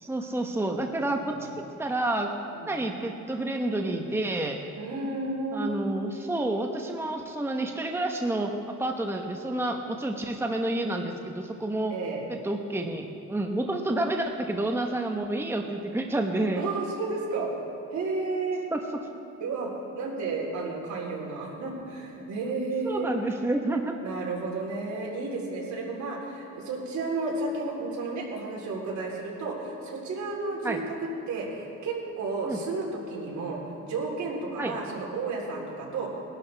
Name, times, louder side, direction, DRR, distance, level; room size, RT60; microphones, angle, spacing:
voice 1, 0.0-1.5 1.8-2.3 2.7-4.6 5.5-8.5 8.8-11.9 12.3-16.6 18.7-18.8 22.8-23.9 30.6-30.8 32.5-32.6 34.6-34.7, right 2 dB, 10° right, 3 dB, 1.0 m, -29 dB
voice 2, 4.8-5.7 11.9-12.3 16.6-17.5 17.9-18.6 19.4-19.7 20.0-23.1 24.0-36.2, right 3 dB, 70° right, -3 dB, 3.7 m, -32 dB
21.5 x 11.5 x 3.4 m, 2.9 s
cardioid pair, 90°, 30 cm